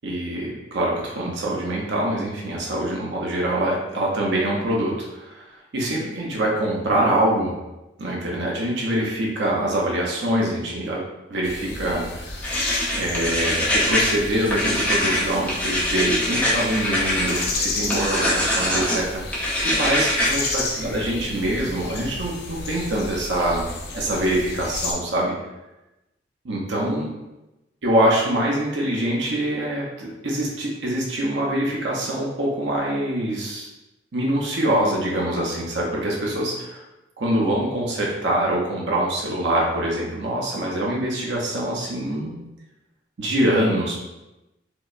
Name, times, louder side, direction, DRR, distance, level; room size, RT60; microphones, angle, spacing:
voice 1, 0.0-7.6 8.0-11.0 11.3-12.4 12.9-25.3 26.4-27.1 27.8-33.7 34.1-36.8 37.2-42.3 43.2-44.0, right 1 dB, 70° right, -3 dB, 0.6 m, -24 dB
sound 1, 11.4-24.9, left 3 dB, 60° left, 0.5 m, -32 dB
sound 2, 12.4-14.2 14.5-17.5 17.9-19.0 19.3-20.3, left 1 dB, 10° left, 0.7 m, -23 dB
4.5 x 2.1 x 2.4 m, 0.98 s
head